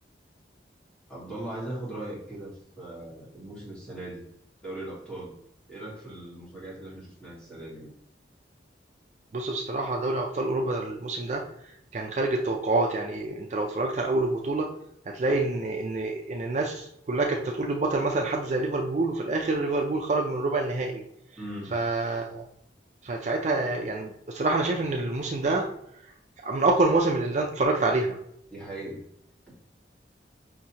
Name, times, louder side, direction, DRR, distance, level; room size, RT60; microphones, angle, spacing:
voice 1, 1.1-4.2 4.6-5.4 5.7-7.9 21.4-21.8 28.5-29.0, right 1 dB, 5° left, -7 dB, 1.5 m, -39 dB
voice 2, 9.3-11.4 11.9-14.7 15.1-21.0 21.7-22.5 23.0-25.7 26.4-28.2, right 2 dB, 40° right, 1 dB, 0.4 m, -27 dB
5.7 x 2.7 x 2.8 m, 0.73 s
head